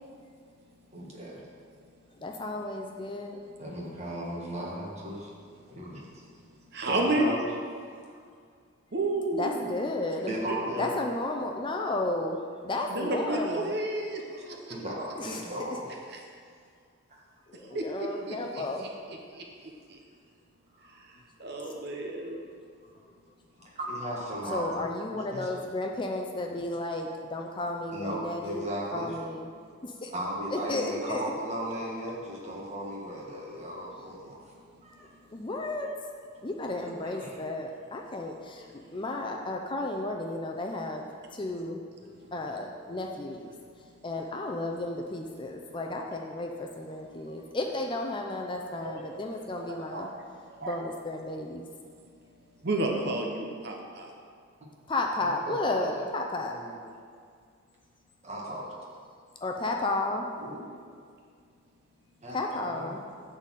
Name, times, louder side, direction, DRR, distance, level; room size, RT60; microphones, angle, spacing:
voice 1, 0.9-1.4 3.6-5.3 5.7-6.3 6.8-7.4 7.9-8.1 10.3-11.0 14.7-16.0 20.8-20.9 23.7-24.8 25.3-25.5 27.9-29.2 30.1-34.4 34.8-35.1 36.8-37.4 55.2-56.1 56.4-56.8 58.2-58.8 60.4-60.7 62.2-62.9, equal, 30° right, -4 dB, 1.6 m, -36 dB
voice 2, 2.2-3.4 9.4-10.3 10.8-13.7 15.2-15.4 17.5-18.9 24.5-28.6 28.9-29.5 29.8-30.1 30.5-31.2 35.3-35.9 36.4-41.1 41.3-43.5 44.0-50.1 50.6-51.7 54.9-56.5 59.4-60.3 62.3-63.0, left 2 dB, 25° left, 2 dB, 0.5 m, -33 dB
voice 3, 6.7-7.4 8.9-9.9 10.2-10.8 12.9-14.8 16.1-16.2 17.7-18.9 19.4-19.5 19.9-20.0 21.4-22.4 48.8-49.1 49.7-50.1 50.5-50.8 52.6-54.1, right 2 dB, 50° right, 1 dB, 0.9 m, -31 dB
9.9 x 4.1 x 7.4 m, 2.1 s
head